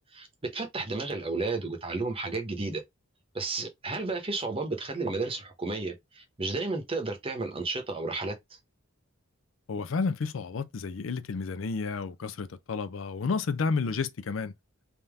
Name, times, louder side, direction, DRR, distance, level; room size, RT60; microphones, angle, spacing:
voice 1, 0.0-2.8 3.3-8.3, right 3 dB, 25° right, 0.9 m, -32 dB
voice 2, 9.7-14.5, left 4 dB, 70° left, 0.5 m, -31 dB
3.5 x 2.8 x 3.3 m
head